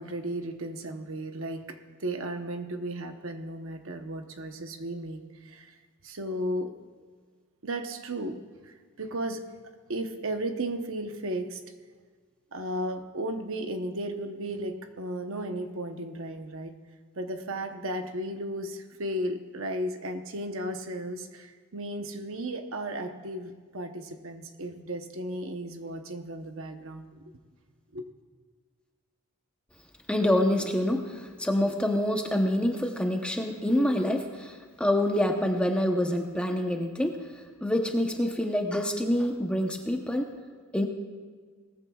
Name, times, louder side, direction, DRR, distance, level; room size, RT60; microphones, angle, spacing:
voice 1, 0.0-5.7 6.0-6.7 7.6-8.4 8.6-9.4 9.9-11.6 12.5-16.7 17.2-27.1 27.9-28.0, right 1 dB, 60° right, 6 dB, 0.9 m, -34 dB
voice 2, 30.1-40.3 40.7-40.9, left 1 dB, 5° left, 3 dB, 0.8 m, -26 dB
19.0 x 14.5 x 2.4 m, 1.5 s
head